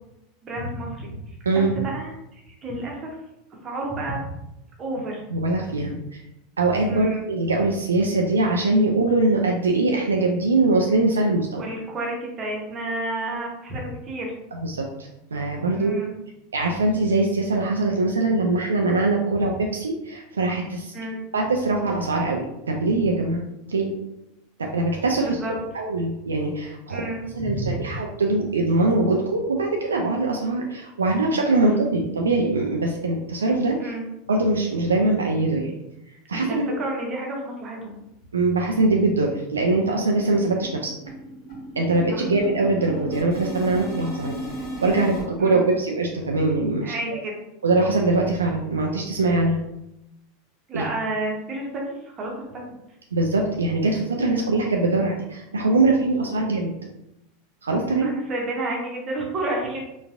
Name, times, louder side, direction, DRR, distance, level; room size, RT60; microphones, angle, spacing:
voice 1, 0.4-1.3 1.7-3.2 3.6-4.3 4.8-5.2 6.9-7.2 11.6-14.4 15.7-16.1 20.9-21.2 25.2-25.5 26.9-27.8 31.6-31.7 33.8-34.1 36.3-38.0 42.1-42.3 45.4-45.7 46.8-47.4 50.7-52.6 58.0-59.8, right 1 dB, 30° right, -1 dB, 1.0 m, -30 dB
voice 2, 5.3-6.0 6.6-11.7 14.5-16.0 16.5-20.9 21.3-23.4 23.7-23.9 24.6-25.4 25.7-27.0 27.3-33.9 34.3-35.7 36.3-36.8 38.3-40.9 41.8-44.4 44.8-46.9 47.6-49.6 50.7-50.8 53.1-56.7 57.6-58.1, right 2 dB, 75° right, 0 dB, 0.3 m, -22 dB
sound 1, 38.4-38.5 38.8-39.0 39.3-45.2, right 1 dB, 40° left, 1.3 m, -36 dB
4.0 x 2.4 x 2.4 m, 0.88 s
figure-of-eight pair, 85°, 0 cm